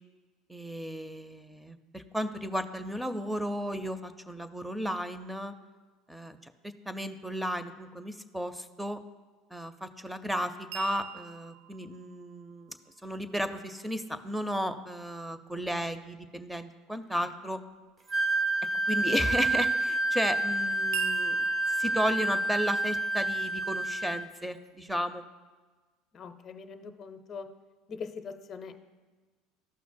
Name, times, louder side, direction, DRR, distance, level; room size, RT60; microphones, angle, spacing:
voice 1, 0.5-5.5 6.1-6.5 6.9-9.0 9.5-12.7 13.0-17.6 18.9-21.5 21.7-25.2, equal, 5° right, 11 dB, 0.6 m, -34 dB
sound 1, 10.7-14.7 20.9-23.7, right 11 dB, 75° right, 0.5 m, -45 dB
Wind instrument woodwind instrument, 18.1-24.2, right 2 dB, 30° right, 1.1 m, -28 dB
voice 2, 26.1-27.5 27.9-28.8, left 5 dB, 40° left, 7 dB, 0.6 m, -42 dB
13.0 x 5.8 x 2.2 m, 1.4 s
hypercardioid pair, 80°, 0 cm